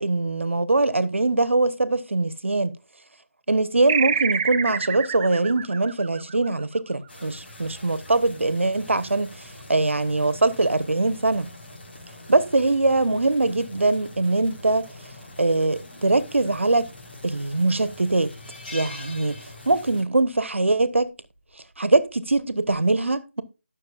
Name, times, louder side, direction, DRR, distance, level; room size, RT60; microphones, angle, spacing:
voice 1, 0.0-2.7 3.5-11.5 12.3-14.9 15.4-16.9 17.2-18.3 18.7-19.4 19.7-21.1 21.8-23.4, right 2 dB, 75° right, 1.2 m, -22 dB
sound 1, 3.9-6.9, right 6 dB, 25° right, 0.5 m, -27 dB
sound 2, 7.1-20.0, left 2 dB, 55° left, 4.6 m, -44 dB
sound 3, 17.1-17.4 17.8-17.9 18.3-20.1 20.4-20.6 21.8-22.1, left 2 dB, 35° left, 4.4 m, -41 dB
18.5 x 6.5 x 2.5 m
figure-of-eight pair, 160°, 7 cm